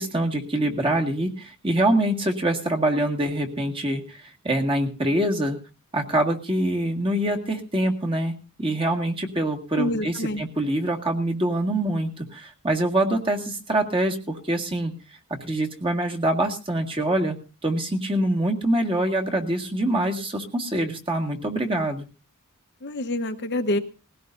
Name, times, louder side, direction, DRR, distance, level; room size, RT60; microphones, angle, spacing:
voice 1, 0.0-5.6 5.9-8.3 8.6-14.9 15.4-17.4 17.6-22.0, right 1 dB, 25° right, 2 dB, 1.9 m, -25 dB
voice 2, 9.8-10.4 22.8-23.8, left 1 dB, 50° left, 7 dB, 1.1 m, -26 dB
20.0 x 16.5 x 2.6 m, 0.32 s
head